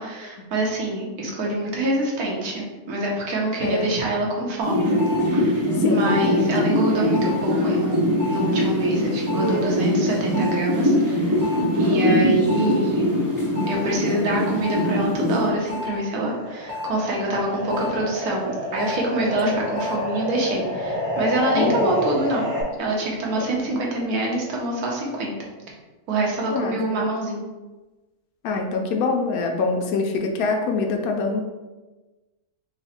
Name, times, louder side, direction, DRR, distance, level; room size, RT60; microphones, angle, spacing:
voice 1, 0.0-4.9 5.2-11.4 11.8-13.2 13.7-22.5 22.8-25.3 26.1-27.4, right 2 dB, 85° right, -2 dB, 1.4 m, -25 dB
voice 2, 3.6-3.9 5.8-6.4 11.9-12.3 19.4-19.6 21.6-22.0 23.4-23.8 26.5-27.0 28.4-31.4, left 4 dB, 80° left, 3 dB, 1.1 m, -25 dB
sound 1, 4.6-15.9 16.3-22.6, left 1 dB, 15° right, 0.6 m, -23 dB
3.8 x 2.1 x 4.1 m, 1.2 s
omnidirectional pair, 1.6 m